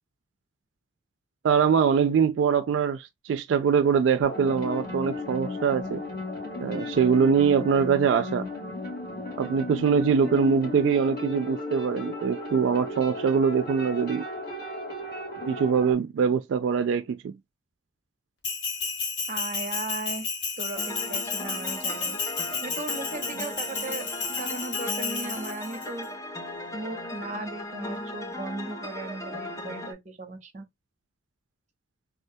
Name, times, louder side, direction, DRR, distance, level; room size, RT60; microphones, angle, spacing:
voice 1, 1.4-6.0 6.6-8.5 9.4-14.2 15.5-17.4, right 6 dB, 85° right, 0.3 m, -23 dB
sound 1, 4.2-15.9, left 2 dB, 60° left, 1.9 m, -35 dB
Bell, 18.4-25.9, left 4 dB, 80° left, 1.2 m, -32 dB
voice 2, 19.3-20.3 20.6-26.1 26.7-30.6, right 2 dB, 40° right, 0.7 m, -37 dB
sound 2, 20.7-29.9, left 1 dB, 15° left, 0.5 m, -37 dB
3.6 x 2.2 x 2.6 m
head